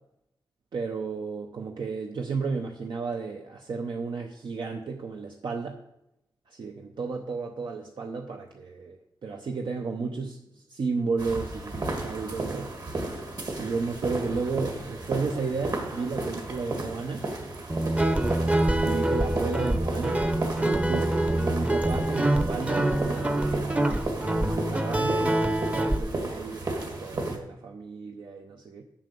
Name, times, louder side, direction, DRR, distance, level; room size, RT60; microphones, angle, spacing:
voice 1, 0.7-5.8 6.5-12.7 13.6-17.3 18.8-24.1 24.4-28.8, right 4 dB, 75° right, 3 dB, 0.8 m, -33 dB
sound 1, 11.2-27.4, right 2 dB, 55° right, 1.9 m, -34 dB
Guitar, 17.7-26.0, right 1 dB, 15° right, 0.7 m, -25 dB
8.5 x 7.3 x 6.6 m, 0.84 s
wide cardioid pair, 160°, 8 cm